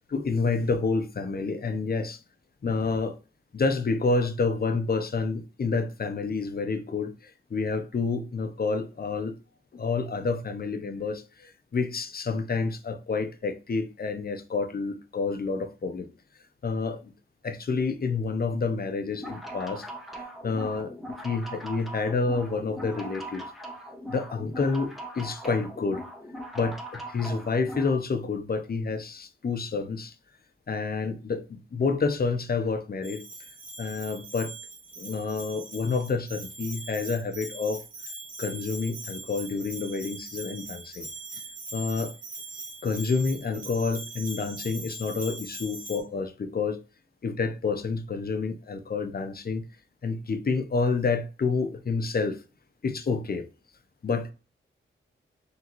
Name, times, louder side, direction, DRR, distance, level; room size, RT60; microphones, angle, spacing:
voice 1, 0.1-2.2 2.6-3.2 3.5-9.3 9.7-16.1 16.6-17.1 17.4-19.8 20.4-20.9 21.2-23.4 24.1-26.0 26.5-30.1 30.7-33.2 33.8-34.5 35.0-37.8 38.4-41.1 41.7-42.1 42.8-46.8 47.2-49.6 50.0-52.4 52.8-53.5 54.0-54.3, left 4 dB, 45° left, 0.6 m, -29 dB
sound 1, 19.1-28.0, right 1 dB, ahead, 1.0 m, -40 dB
Bell, 33.0-46.0, right 3 dB, 40° right, 1.6 m, -41 dB
4.0 x 3.5 x 2.9 m
wide cardioid pair, 85°, 21 cm